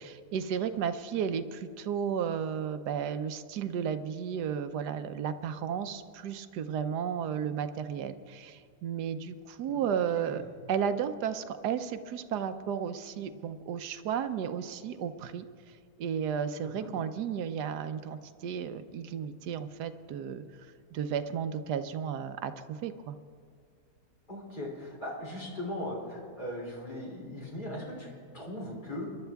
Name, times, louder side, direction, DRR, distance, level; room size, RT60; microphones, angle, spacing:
voice 1, 0.0-10.4 10.7-15.5 16.0-20.4 20.9-23.2, right 8 dB, 80° right, 11 dB, 1.3 m, -33 dB
voice 2, 9.7-10.4 16.6-16.9 24.3-29.1, left 1 dB, 30° left, -3 dB, 3.2 m, -39 dB
24.5 x 11.5 x 3.5 m, 2.2 s
omnidirectional pair, 1.7 m